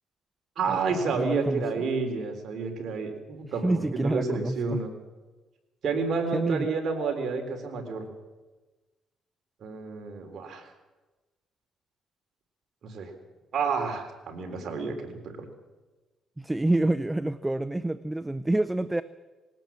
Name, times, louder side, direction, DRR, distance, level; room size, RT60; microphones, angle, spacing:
voice 1, 0.6-4.9 5.8-8.1 9.6-10.7 12.8-13.1 13.5-15.5, right 4 dB, 60° right, 4 dB, 3.9 m, -30 dB
voice 2, 1.1-1.6 3.6-4.8 6.3-6.7 16.4-19.0, right 1 dB, 10° right, 15 dB, 0.6 m, -27 dB
19.5 x 18.0 x 7.5 m, 1.2 s
cardioid pair, 90°, 0 cm